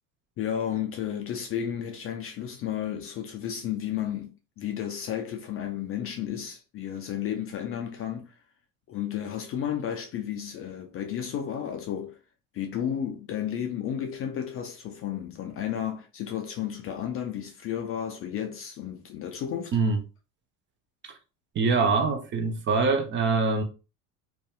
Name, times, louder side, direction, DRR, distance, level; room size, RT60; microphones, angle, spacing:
voice 1, 0.4-4.3 4.6-8.4 8.9-12.2 12.5-19.8, left 9 dB, 30° left, 0.4 m, -32 dB
voice 2, 21.5-23.6, right 4 dB, 25° right, 0.5 m, -24 dB
2.6 x 2.3 x 2.4 m
hypercardioid pair, 75°, 46 cm